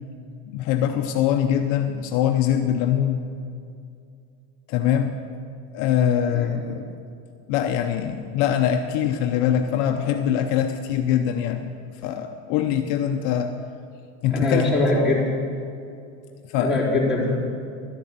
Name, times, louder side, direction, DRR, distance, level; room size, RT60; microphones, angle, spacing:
voice 1, 0.5-3.3 4.7-5.2 5.7-7.0 7.5-11.7 12.0-13.5 14.2-14.7 16.5-16.8, left 9 dB, 55° left, 6 dB, 0.7 m, -23 dB
voice 2, 6.2-6.6 14.3-15.3 16.6-17.5, left 2 dB, 5° right, -6 dB, 3.7 m, -22 dB
12.5 x 6.9 x 8.1 m, 2.4 s
supercardioid pair, 145°, 35 cm